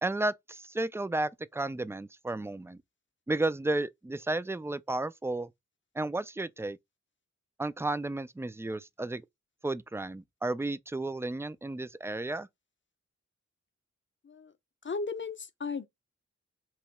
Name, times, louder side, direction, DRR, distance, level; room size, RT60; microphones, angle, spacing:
voice 1, 0.0-2.8 3.3-5.5 6.0-6.8 7.6-9.2 9.6-12.5, right 2 dB, 10° right, 0.3 m, -33 dB
voice 2, 14.8-15.9, left 4 dB, 40° left, 0.6 m, -35 dB
3.0 x 2.8 x 4.5 m
wide cardioid pair, 60°, 29 cm